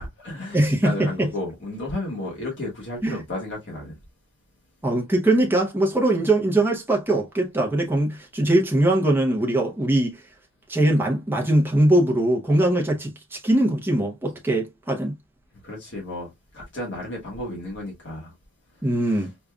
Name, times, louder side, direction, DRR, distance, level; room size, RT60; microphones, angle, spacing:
voice 1, 0.0-4.0 15.6-18.3 18.8-19.3, left 1 dB, 60° left, 1.3 m, -33 dB
voice 2, 0.5-1.3 3.0-3.2 4.8-10.2 10.7-15.1 18.8-19.3, right 1 dB, 10° right, 0.7 m, -21 dB
5.0 x 2.3 x 2.3 m
head